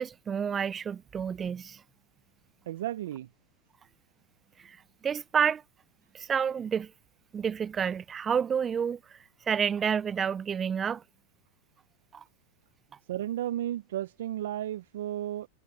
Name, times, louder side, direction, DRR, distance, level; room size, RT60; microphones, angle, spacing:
voice 1, 0.0-1.8 4.6-4.8 5.0-5.6 6.1-6.9 7.3-9.2 9.5-11.0 12.1-12.2, right 7 dB, 20° right, 0.3 m, -29 dB
voice 2, 2.7-3.3 13.1-15.5, right 12 dB, 75° right, 0.5 m, -33 dB
hypercardioid pair, 125°, 0 cm